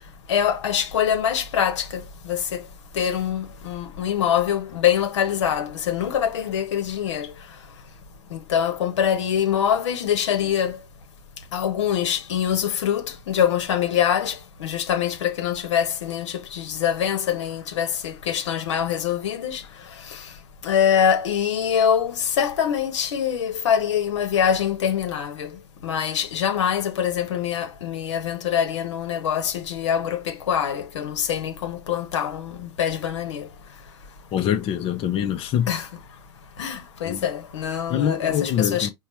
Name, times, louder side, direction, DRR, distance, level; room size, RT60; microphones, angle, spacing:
voice 1, 0.3-2.6 2.9-7.3 8.3-10.8 11.5-19.6 20.6-25.5 25.8-33.4 35.7-35.9 36.6-38.9, left 9 dB, 80° left, 1.0 m, -24 dB
voice 2, 34.3-35.7 37.0-37.3 37.9-38.9, left 9 dB, 40° left, 0.7 m, -24 dB
4.5 x 2.3 x 4.2 m
hypercardioid pair, 100°, 15 cm